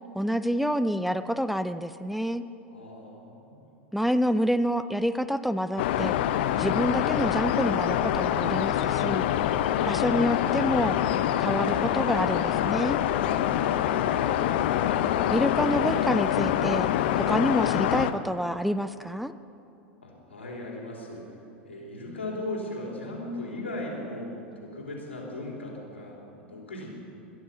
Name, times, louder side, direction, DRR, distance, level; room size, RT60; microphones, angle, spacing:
voice 1, 0.2-2.4 3.9-6.2 6.6-9.3 9.9-11.0 11.4-13.0 15.3-16.9 17.1-19.3, equal, ahead, 11 dB, 0.5 m, -27 dB
voice 2, 2.7-3.6 20.0-21.3 21.6-26.9, left 1 dB, 90° left, -3 dB, 4.0 m, -38 dB
sound 1, 5.8-18.1, left 11 dB, 60° left, 0.8 m, -25 dB
21.5 x 11.0 x 5.8 m, 2.8 s
figure-of-eight pair, 85°, 6 cm